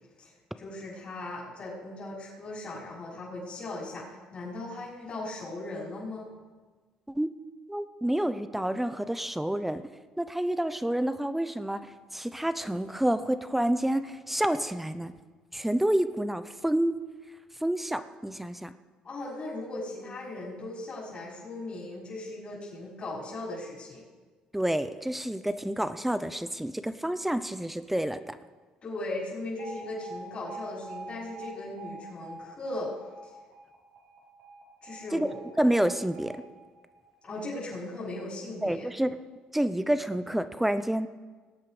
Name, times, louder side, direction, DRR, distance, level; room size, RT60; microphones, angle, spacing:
voice 1, 0.6-6.3 19.0-24.0 28.8-32.9 33.2-33.3 34.8-35.4 37.2-38.9, left 2 dB, 40° left, -6 dB, 5.4 m, -38 dB
voice 2, 7.7-9.8 10.2-15.1 15.5-16.9 17.6-18.7 24.5-28.4 35.1-35.3 35.6-36.3 38.6-39.2 39.5-41.1, right 1 dB, 5° right, 11 dB, 0.7 m, -28 dB
Alarm, 29.6-37.6, right 2 dB, 75° right, 3.3 m, -46 dB
19.0 x 8.7 x 5.0 m, 1.4 s
supercardioid pair, 75°, 3 cm